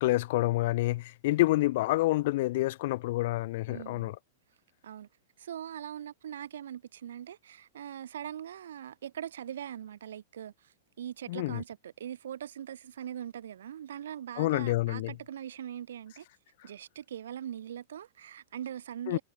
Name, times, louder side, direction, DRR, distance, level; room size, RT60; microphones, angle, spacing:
voice 1, 0.0-4.1 11.3-11.6 14.4-15.1 19.1-19.2, left 18 dB, 45° left, 1.0 m, -28 dB
voice 2, 3.7-4.2 4.8-5.1 5.4-16.3 16.6-19.2, right 10 dB, 85° right, 7.3 m, -41 dB
supercardioid pair, 175°, 0 cm